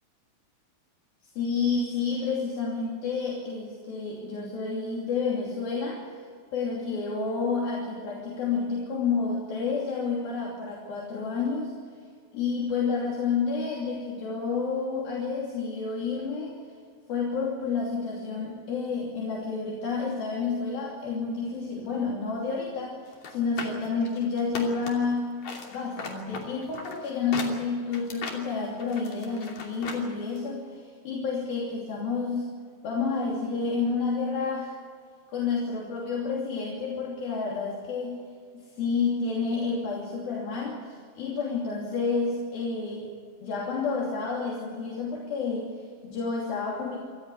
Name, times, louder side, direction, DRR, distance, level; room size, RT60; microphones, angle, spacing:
voice 1, 1.4-6.0 6.5-11.7 12.3-16.6 17.1-25.4 25.7-32.5 32.8-34.8 35.3-38.2 38.5-43.1 43.4-47.0, left 4 dB, 65° left, -3 dB, 4.6 m, -30 dB
sound 1, 23.1-25.1 25.4-30.0 30.4-30.5, left 4 dB, 45° left, 3.9 m, -38 dB
27.0 x 14.5 x 8.2 m, 2.1 s
omnidirectional pair, 4.7 m